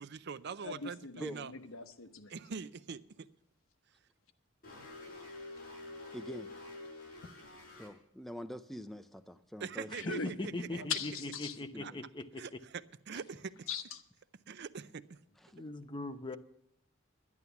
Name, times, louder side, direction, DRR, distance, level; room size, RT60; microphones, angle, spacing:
voice 1, 0.0-1.5 2.3-3.3 9.6-10.8 11.8-11.9 12.4-12.5 13.1-13.7 14.5-15.2, right 6 dB, 55° right, 0.5 m, -43 dB
voice 2, 0.6-2.4 9.9-10.3 10.9-11.5 13.7-14.0, left 6 dB, 85° left, 1.0 m, -40 dB
sound 1, 4.6-7.9, left 2 dB, 45° left, 4.7 m, -48 dB
voice 3, 6.1-6.5 7.8-10.1 11.7-11.9 15.4-15.5, equal, ahead, 0.5 m, -45 dB
voice 4, 10.0-12.6 15.5-16.4, left 2 dB, 25° left, 0.8 m, -40 dB
11.0 x 11.0 x 7.0 m
head